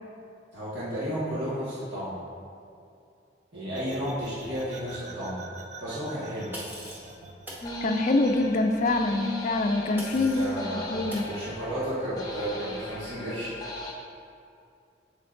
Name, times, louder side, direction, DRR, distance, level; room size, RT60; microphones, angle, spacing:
voice 1, 0.5-2.2 3.5-5.4 5.8-6.5 10.1-13.6, equal, 70° right, -11 dB, 1.7 m, -33 dB
sound 1, 3.7-9.3, right 4 dB, 40° right, 0.5 m, -47 dB
sound 2, 6.5-7.1 7.5-7.7 10.0-10.6 11.1-11.3, equal, 10° right, 0.9 m, -40 dB
sound 3, 7.6-13.9, left 1 dB, 20° left, 0.8 m, -36 dB
voice 2, 7.8-11.3, left 2 dB, 40° left, 7 dB, 0.4 m, -25 dB
8.5 x 6.6 x 2.6 m, 2.5 s
head